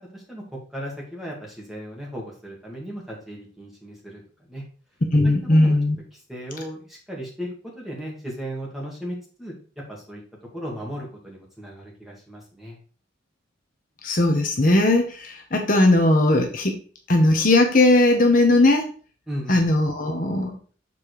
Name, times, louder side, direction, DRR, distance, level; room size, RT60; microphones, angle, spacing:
voice 1, 0.1-4.2 4.5-4.6 5.2-5.8 6.1-7.5 7.8-9.5 9.9-10.2 10.5-12.8 19.3-19.6, equal, ahead, -3 dB, 2.1 m, -36 dB
voice 2, 5.1-6.0 14.0-16.8 17.1-18.9 19.5-20.6, left 2 dB, 45° left, 3 dB, 1.1 m, -18 dB
7.0 x 4.2 x 4.8 m, 0.39 s
head